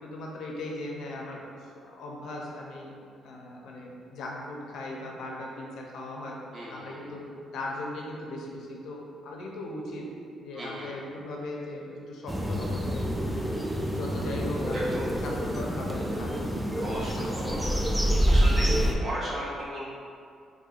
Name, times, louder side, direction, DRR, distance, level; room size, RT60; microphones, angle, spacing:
voice 1, 0.0-2.9 3.2-6.4 6.7-10.1 10.4-13.0 13.8-14.9 15.2-16.5 16.7-17.7, left 1 dB, 75° left, -2 dB, 0.5 m, -38 dB
voice 2, 6.5-7.1 10.5-11.0 14.7-15.1 16.8-17.8 18.2-19.8, right 1 dB, 45° right, -7 dB, 1.0 m, -36 dB
sound 1, 12.3-18.9, equal, 5° right, 0.3 m, -27 dB
4.4 x 2.2 x 2.4 m, 2.3 s
cardioid pair, 90°, 0 cm